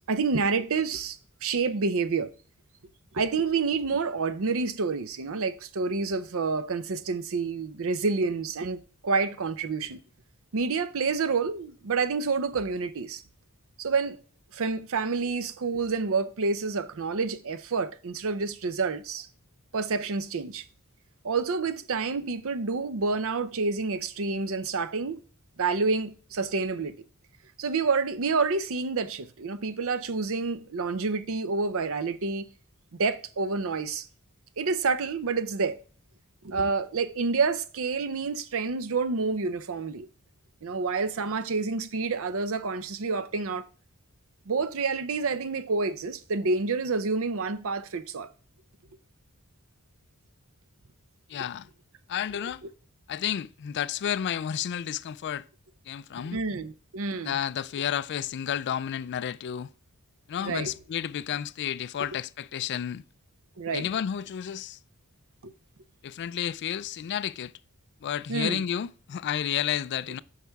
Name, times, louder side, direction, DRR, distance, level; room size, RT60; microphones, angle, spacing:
voice 1, 0.1-2.3 3.1-8.8 9.0-10.0 10.5-13.2 13.8-14.2 14.5-19.3 19.7-20.7 21.2-25.2 25.6-27.0 27.6-32.5 33.0-34.1 34.6-35.8 36.4-40.1 40.6-43.6 44.5-48.3 56.2-57.4 60.4-60.7 63.6-63.8 65.4-65.5 68.3-68.6, right 4 dB, 65° right, 0.6 m, -28 dB
voice 2, 51.3-51.7 52.1-52.6 53.1-55.5 55.9-56.4 57.2-59.7 60.3-63.0 63.7-64.8 66.0-67.5 68.0-70.2, left 9 dB, 50° left, 0.3 m, -31 dB
8.2 x 5.7 x 3.5 m
head